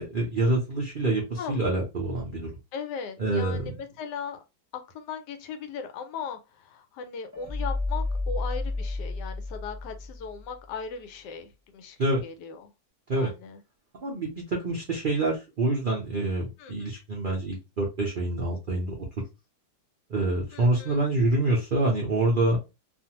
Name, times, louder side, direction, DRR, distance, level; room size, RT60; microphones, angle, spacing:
voice 1, 0.0-2.5 3.2-3.8 12.0-12.2 13.1-13.3 14.0-18.9 20.1-22.6, right 2 dB, 80° right, 0.4 m, -26 dB
voice 2, 2.7-4.4 4.7-12.7 13.1-13.6 16.6-16.9 20.5-21.0, left 6 dB, 80° left, 1.2 m, -38 dB
sound 1, 7.3-10.5, left 2 dB, 20° right, 0.5 m, -31 dB
2.5 x 2.4 x 2.8 m
omnidirectional pair, 1.9 m